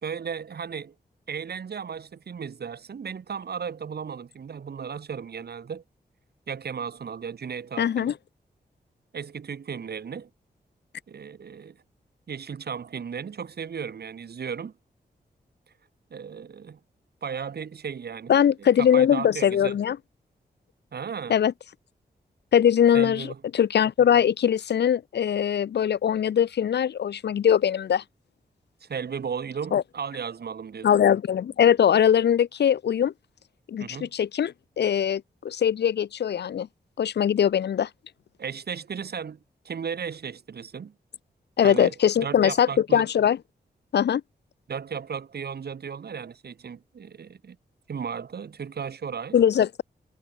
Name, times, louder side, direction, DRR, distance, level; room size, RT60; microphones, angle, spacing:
voice 1, 0.0-0.9 1.3-5.8 6.5-8.1 9.1-10.3 11.1-11.8 12.3-14.7 16.1-16.8 17.2-18.3 18.8-19.7 20.9-21.4 22.9-23.4 28.8-30.9 33.8-34.1 38.4-39.4 39.6-40.9 41.6-41.9 42.2-43.1 44.7-47.6 47.9-49.4, right 6 dB, 70° right, 3.4 m, -35 dB
voice 2, 7.8-8.1 18.3-20.0 21.3-21.5 22.5-28.0 29.7-29.8 30.8-33.1 33.7-36.7 37.0-37.9 41.6-43.4 43.9-44.2 49.3-49.8, left 9 dB, 80° left, 0.9 m, -21 dB
wide cardioid pair, 85°, 17 cm